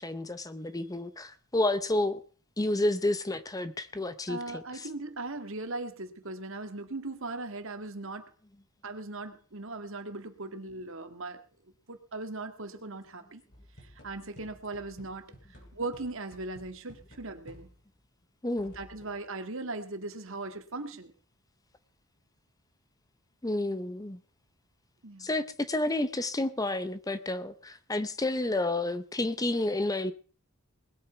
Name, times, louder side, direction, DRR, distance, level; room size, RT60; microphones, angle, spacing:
voice 1, 0.0-2.2 2.6-4.9 18.4-18.7 23.4-24.2 25.2-30.1, left 2 dB, 15° left, 13 dB, 0.7 m, -30 dB
voice 2, 4.3-8.3 8.8-11.4 11.9-13.4 13.8-15.3 15.7-17.7 18.7-21.1 25.0-25.3, right 2 dB, 65° right, 8 dB, 1.9 m, -39 dB
sound 1, 13.5-18.0 18.6-19.3, equal, 50° left, 6.3 m, -54 dB
20.0 x 8.4 x 5.7 m, 0.38 s
head